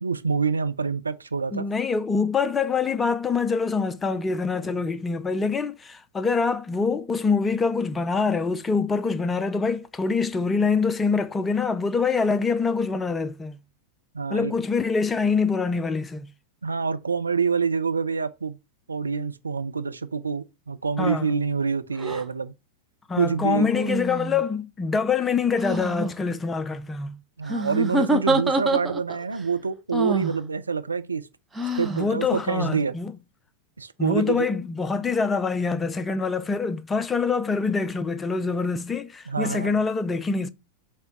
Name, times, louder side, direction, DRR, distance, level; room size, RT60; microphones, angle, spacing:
voice 1, 0.0-1.7 14.1-14.5 16.6-18.6 18.9-22.5 23.2-23.7 27.4-31.3 31.7-32.9 33.8-34.5 39.3-39.8, right 5 dB, 75° right, 0.6 m, -26 dB
voice 2, 1.5-13.6 14.3-16.3 21.0-21.3 23.1-27.2 31.9-33.1 34.0-40.5, left 5 dB, 15° left, 0.6 m, -25 dB
sound 1, 22.0-22.2 23.5-24.4 25.5-26.1 27.5-29.2 29.9-30.4 31.5-32.0, right 2 dB, 10° right, 0.9 m, -26 dB
6.5 x 3.5 x 5.2 m
figure-of-eight pair, 90°, 0 cm